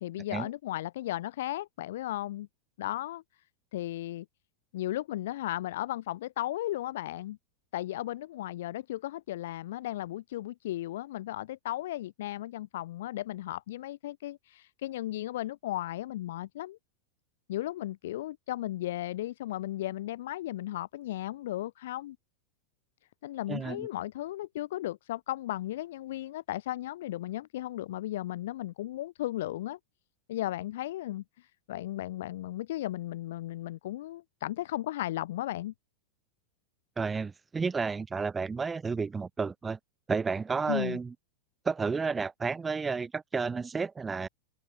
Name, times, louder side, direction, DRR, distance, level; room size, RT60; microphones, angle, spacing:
voice 1, 0.0-2.5 2.8-3.2 3.7-4.2 4.7-7.4 7.7-16.8 17.5-22.2 23.2-29.8 30.3-35.7 40.7-41.0, left 14 dB, 55° left, 1.2 m, -35 dB
voice 2, 23.5-23.9 37.0-39.8 40.1-41.1 41.6-44.3, right 5 dB, 15° right, 0.8 m, -31 dB
figure-of-eight pair, 90°, 0 cm